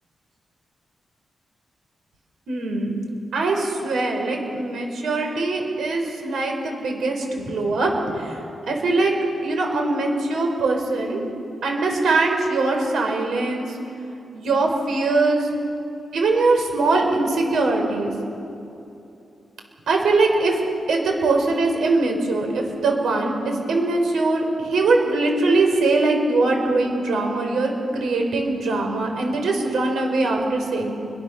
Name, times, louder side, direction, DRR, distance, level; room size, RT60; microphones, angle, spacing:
voice 1, 2.5-2.9 3.3-8.4 8.7-9.1 9.4-11.2 11.6-13.8 14.3-15.5 16.1-18.1 19.9-30.9, right 3 dB, 80° right, 2 dB, 5.6 m, -22 dB
30.0 x 23.0 x 7.0 m, 2.8 s
cardioid pair, 95°, 0 cm